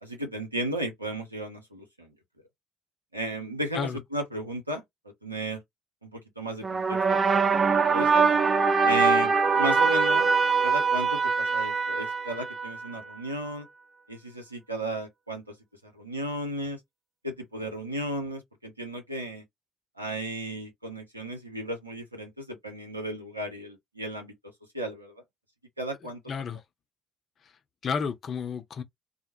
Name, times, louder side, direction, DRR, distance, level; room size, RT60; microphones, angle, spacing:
voice 1, 0.0-2.1 3.1-4.8 5.2-5.6 6.0-7.5 7.9-8.2 8.8-10.3 10.6-13.7 14.1-15.4 15.8-16.8 17.2-19.4 20.0-24.3 24.7-25.2 25.8-26.2, right 1 dB, 90° right, 0.6 m, -34 dB
sound 1, 6.6-13.0, right 5 dB, 35° right, 0.4 m, -23 dB
voice 2, 26.3-26.6 27.8-28.8, left 6 dB, 45° left, 0.5 m, -31 dB
2.2 x 2.0 x 2.9 m
figure-of-eight pair, 50°, 0 cm